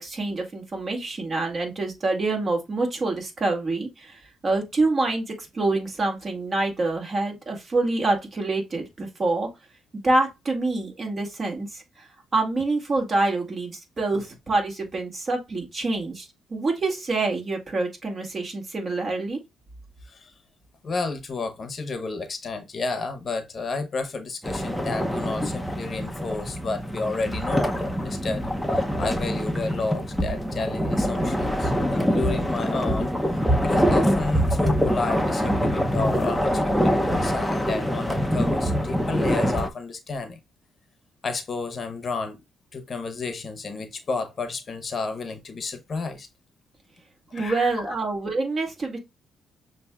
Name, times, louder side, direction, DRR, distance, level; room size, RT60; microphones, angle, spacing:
voice 1, 0.0-9.5 10.0-19.4 47.3-49.0, right 2 dB, 40° right, 2.0 m, -26 dB
voice 2, 20.8-27.7 28.0-33.1 33.6-40.4 41.2-42.4 42.7-46.3 47.3-47.9, left 4 dB, 40° left, 0.8 m, -31 dB
sound 1, 24.4-39.7, equal, ahead, 0.6 m, -24 dB
6.6 x 2.7 x 2.3 m
cardioid pair, 90°, 0 cm